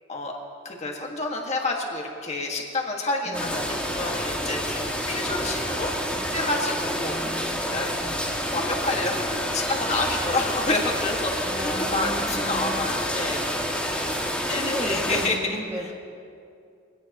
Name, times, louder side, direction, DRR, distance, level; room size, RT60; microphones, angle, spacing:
voice 1, 0.6-7.9 8.5-13.4 14.5-15.5, left 2 dB, 35° left, 0 dB, 1.9 m, -29 dB
sound 1, 3.3-15.3, equal, 5° left, 2.0 m, -28 dB
voice 2, 3.3-4.0 6.7-8.2 11.4-12.7 14.5-15.9, right 1 dB, 15° right, -3 dB, 1.9 m, -35 dB
24.0 x 17.5 x 3.1 m, 2.4 s
head